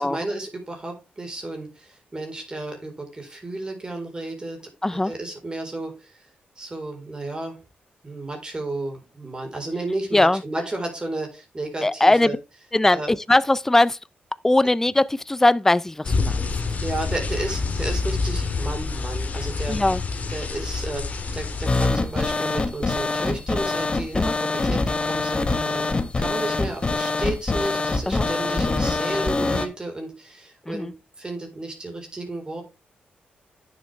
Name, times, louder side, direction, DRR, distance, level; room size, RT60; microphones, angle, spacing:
voice 1, 0.0-4.6 5.1-6.2 6.6-7.6 8.0-12.3 12.9-13.1 16.8-19.8 20.3-21.0 21.3-24.3 24.5-25.9 26.2-32.6, right 2 dB, 25° right, 4.1 m, -32 dB
voice 2, 11.8-12.4 12.7-14.0 14.4-16.5 19.7-20.0 24.1-24.3 28.1-28.3 30.7-30.9, left 2 dB, 10° left, 0.4 m, -20 dB
sound 1, 16.0-21.9, left 4 dB, 50° left, 2.4 m, -27 dB
sound 2, 21.7-29.7, left 3 dB, 30° left, 1.4 m, -24 dB
9.4 x 7.2 x 3.3 m
cardioid pair, 80°, 3 cm